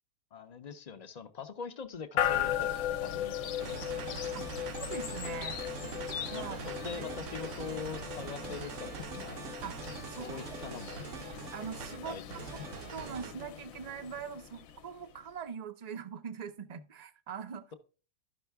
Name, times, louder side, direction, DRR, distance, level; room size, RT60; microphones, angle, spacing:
voice 1, 0.3-4.3 6.3-9.5 10.2-11.0 12.0-12.4, left 6 dB, 40° left, 0.6 m, -43 dB
sound 1, 2.2-15.2, left 10 dB, 75° left, 1.1 m, -37 dB
sound 2, 3.6-13.4, right 7 dB, 65° right, 0.9 m, -43 dB
voice 2, 4.8-5.6 6.3-6.7 7.0-7.1 8.4-8.6 9.6-9.8 10.1-10.6 11.5-12.4 12.9-17.6, right 7 dB, 45° right, 0.5 m, -42 dB
12.0 x 5.5 x 3.4 m
omnidirectional pair, 1.5 m